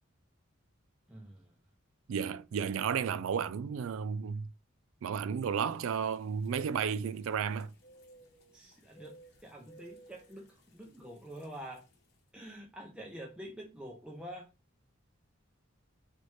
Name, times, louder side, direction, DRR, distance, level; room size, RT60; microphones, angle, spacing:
voice 1, 1.1-1.6 8.5-11.9 12.3-14.5, equal, 5° right, 0.5 m, -47 dB
voice 2, 2.1-4.5 5.0-7.7, right 7 dB, 70° right, 0.3 m, -33 dB
sound 1, 5.6-12.2, right 2 dB, 55° left, 1.0 m, -60 dB
4.0 x 3.3 x 3.2 m
head